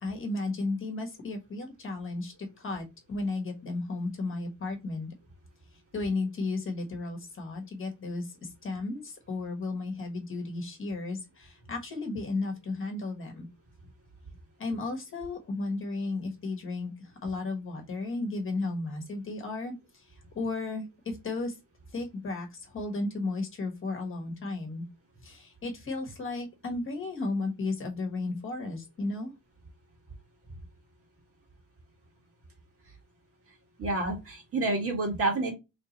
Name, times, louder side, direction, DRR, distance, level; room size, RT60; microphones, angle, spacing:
voice 1, 0.0-5.1 5.9-13.5 14.6-21.6 21.9-24.9 25.2-29.3, left 3 dB, 35° left, 3 dB, 1.3 m, -34 dB
voice 2, 33.8-35.5, right 2 dB, 40° right, 2 dB, 1.7 m, -28 dB
4.6 x 3.4 x 2.9 m, 0.23 s
cardioid pair, 175°, 35 cm